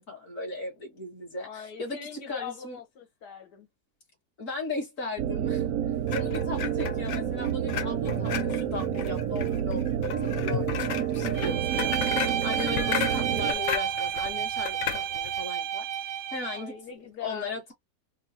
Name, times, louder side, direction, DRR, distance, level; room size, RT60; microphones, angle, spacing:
voice 1, 0.0-2.8 4.4-5.7 6.1-16.7 17.2-17.7, left 3 dB, 55° left, 1.8 m, -37 dB
voice 2, 1.4-3.7 16.5-17.6, left 7 dB, 85° left, 1.5 m, -41 dB
sound 1, 5.2-13.5, right 10 dB, 70° right, 0.8 m, -29 dB
sound 2, 6.1-15.4, left 9 dB, 70° left, 0.7 m, -34 dB
Bowed string instrument, 11.4-16.7, right 9 dB, 85° right, 1.2 m, -31 dB
3.8 x 2.0 x 2.6 m
omnidirectional pair, 1.7 m